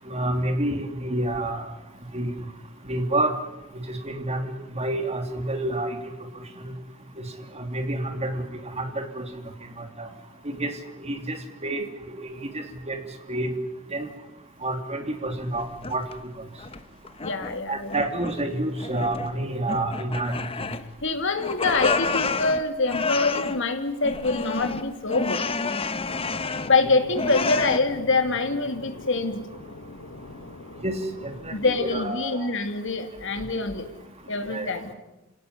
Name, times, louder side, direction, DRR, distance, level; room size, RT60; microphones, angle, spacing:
voice 1, 0.0-1.6 2.1-2.3 2.8-3.4 3.9-6.1 6.6-6.7 7.2-7.3 7.5-8.4 8.8-9.2 9.8-10.1 10.4-10.7 11.0-11.8 12.1-13.0 13.3-13.5 13.9-14.1 14.6-16.1 17.7-20.3 26.8-26.9 30.8-30.9 31.2-32.5 34.5-34.7, right 1 dB, 30° right, 5 dB, 3.0 m, -29 dB
sound 1, 15.3-16.2 16.6-17.6 17.9-18.5 18.8-19.4 19.7-21.1 21.4-23.6 24.0-26.8 27.1-27.8, left 4 dB, 30° left, 1.0 m, -29 dB
voice 2, 17.2-18.0 21.0-25.4 26.7-29.4 31.5-33.9 34.3-34.9, left 3 dB, 65° left, 7 dB, 2.9 m, -25 dB
sound 2, 26.1-32.1, left 2 dB, 80° left, 1.8 m, -43 dB
27.0 x 18.0 x 9.9 m, 0.99 s
head